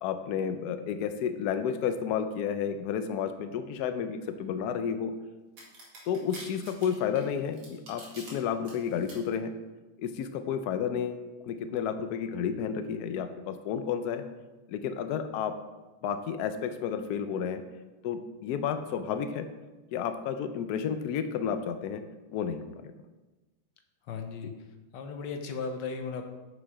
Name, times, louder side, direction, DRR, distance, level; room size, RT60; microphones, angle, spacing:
voice 1, 0.0-5.1 6.0-9.5 10.0-14.2 14.7-15.5 16.0-17.6 18.0-19.5 19.9-22.0 22.3-22.9, left 7 dB, 90° left, 9 dB, 0.8 m, -31 dB
sound 1, 5.6-8.3 8.6-9.1, right 2 dB, 80° right, 2.9 m, -46 dB
voice 2, 24.1-24.5 24.9-26.2, left 5 dB, 65° left, 6 dB, 1.3 m, -36 dB
6.3 x 6.2 x 4.7 m, 1.2 s
omnidirectional pair, 2.3 m